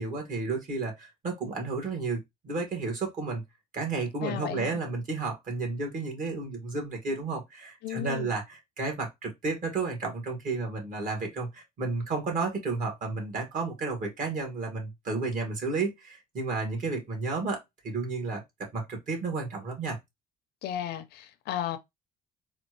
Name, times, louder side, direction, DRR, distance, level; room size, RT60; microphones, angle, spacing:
voice 1, 0.0-3.4 3.7-20.0, right 3 dB, 50° right, 1.9 m, -32 dB
voice 2, 4.2-4.8 7.8-8.3 20.6-21.8, left 11 dB, 75° left, 0.6 m, -34 dB
4.3 x 2.5 x 3.0 m
cardioid pair, 110°, 17 cm